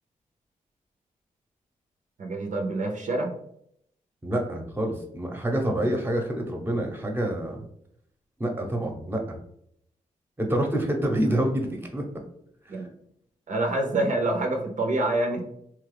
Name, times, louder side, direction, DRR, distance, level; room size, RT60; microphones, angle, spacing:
voice 1, 2.2-3.4 12.7-12.9 13.5-15.5, right 2 dB, 65° right, 2 dB, 0.6 m, -26 dB
voice 2, 4.2-7.6 8.4-9.4 10.4-12.1 12.7-12.8, right 1 dB, 15° right, 3 dB, 0.8 m, -27 dB
3.0 x 2.4 x 3.3 m, 0.71 s
cardioid pair, 55°, 14 cm